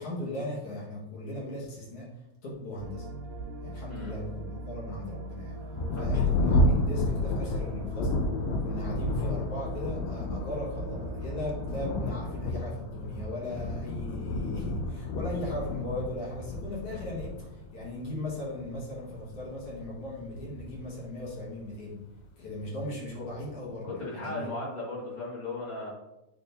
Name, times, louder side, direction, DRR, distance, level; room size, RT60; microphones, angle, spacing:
voice 1, 0.0-2.1 2.4-3.1 3.6-5.6 5.9-8.1 8.6-22.0 22.4-24.5, left 1 dB, 55° left, -5 dB, 1.7 m, -38 dB
sound 1, 2.8-12.4, right 1 dB, 75° right, 2.0 m, -40 dB
Thunder, 5.7-21.8 22.6-22.7 23.2-23.7, left 1 dB, 80° left, 2.3 m, -31 dB
voice 2, 5.9-6.3 23.8-25.9, left 2 dB, 40° left, -7 dB, 0.6 m, -37 dB
8.5 x 5.2 x 2.6 m, 0.92 s
omnidirectional pair, 4.6 m